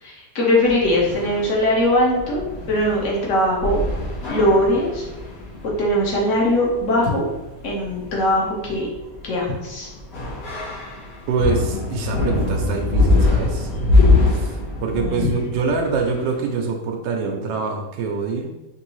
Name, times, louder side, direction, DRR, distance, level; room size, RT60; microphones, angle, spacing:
voice 1, 0.0-3.8 4.3-5.1 5.8-7.3 7.6-8.9 9.2-9.9 15.0-15.2, left 1 dB, 50° left, -3 dB, 1.2 m, -20 dB
sound 1, 0.6-16.3, left 2 dB, 75° left, 1.9 m, -24 dB
voice 2, 11.3-13.7 14.3-18.5, right 4 dB, 90° right, 2 dB, 1.2 m, -25 dB
5.1 x 2.7 x 3.1 m, 1.0 s
omnidirectional pair, 1.9 m